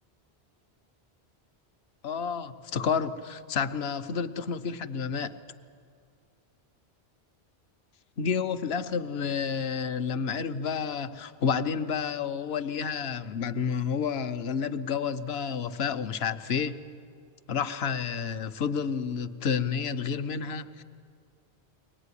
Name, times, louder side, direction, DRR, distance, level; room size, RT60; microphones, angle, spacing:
voice 1, 2.0-5.3 8.2-16.8 17.5-20.8, left 6 dB, 70° left, 10 dB, 1.0 m, -30 dB
23.5 x 18.5 x 9.8 m, 2.3 s
omnidirectional pair, 1.1 m